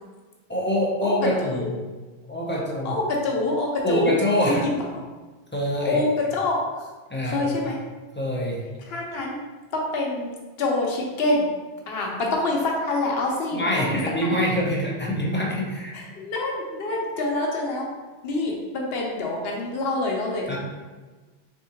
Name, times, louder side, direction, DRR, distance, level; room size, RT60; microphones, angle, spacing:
voice 1, 0.5-1.8 2.3-3.0 3.8-4.7 5.5-6.0 7.1-7.6 8.1-8.6 13.5-15.9 20.5-20.6, equal, 20° left, -4 dB, 0.3 m, -25 dB
voice 2, 1.0-1.7 2.8-4.1 4.5-4.8 5.8-6.6 7.2-7.8 8.9-9.4 9.7-10.3 10.6-11.5 11.9-14.4 15.9-17.9 18.2-20.6, left 2 dB, 65° left, -1 dB, 1.0 m, -26 dB
3.6 x 3.5 x 2.8 m, 1.3 s
omnidirectional pair, 1.2 m